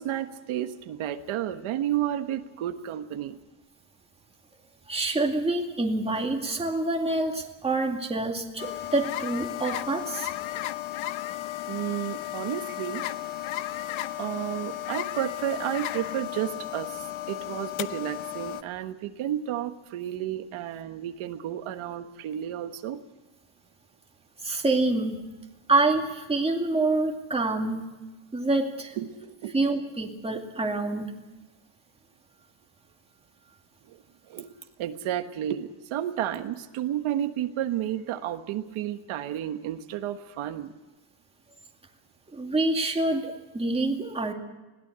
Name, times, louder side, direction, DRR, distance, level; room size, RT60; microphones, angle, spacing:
voice 1, 0.0-3.4 11.7-13.0 14.2-23.0 29.0-29.5 33.9-34.5 34.8-40.7, right 11 dB, 80° right, 7 dB, 1.4 m, -32 dB
voice 2, 4.9-10.3 24.4-25.2 25.7-27.9 28.3-29.0 29.5-31.1 42.3-44.3, right 2 dB, 10° right, 1 dB, 2.3 m, -26 dB
sound 1, 8.6-18.6, left 14 dB, 75° left, 1.0 m, -34 dB
21.0 x 17.5 x 8.1 m, 1.1 s
cardioid pair, 165°, 48 cm